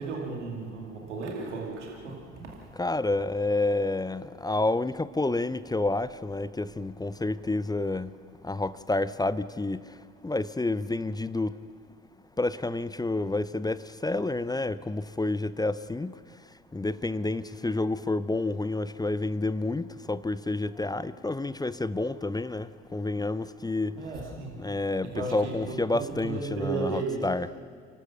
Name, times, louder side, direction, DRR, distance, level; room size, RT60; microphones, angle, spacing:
voice 1, 0.0-2.7 23.9-24.6 25.0-27.3, right 3 dB, 90° right, 2.5 m, -34 dB
voice 2, 2.8-8.1 8.4-9.8 10.2-11.6 12.4-16.1 16.7-24.0 24.6-27.5, left 2 dB, 10° left, 0.6 m, -29 dB
29.5 x 12.5 x 7.0 m
hypercardioid pair, 55°, 34 cm